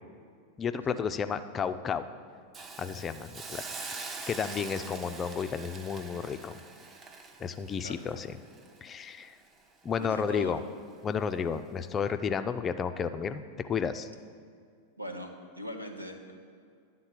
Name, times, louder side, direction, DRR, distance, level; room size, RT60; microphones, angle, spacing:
voice 1, 0.6-2.0 2.8-3.6 4.3-6.6 7.4-8.4 8.8-9.3 9.8-10.6 11.0-14.1, left 6 dB, 25° left, 10 dB, 0.4 m, -32 dB
Hiss, 2.5-9.6 10.0-10.1, right 3 dB, 25° right, 0.7 m, -44 dB
voice 2, 10.0-10.5 15.0-16.3, equal, 85° right, 4 dB, 0.8 m, -40 dB
10.0 x 3.8 x 7.4 m, 2.2 s
figure-of-eight pair, 90°, 0 cm